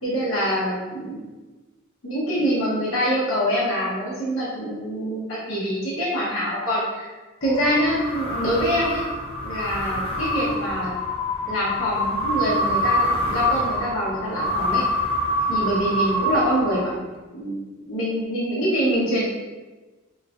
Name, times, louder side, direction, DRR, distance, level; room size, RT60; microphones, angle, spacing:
voice 1, 0.0-1.2 2.0-7.1 7.4-9.0 9.4-10.9 11.5-14.8 15.5-16.9 17.3-17.6 17.9-19.3, equal, 85° left, -8 dB, 0.9 m, -25 dB
sound 1, 7.4-17.2, equal, 30° left, 0.5 m, -26 dB
3.0 x 2.3 x 2.4 m, 1.2 s
head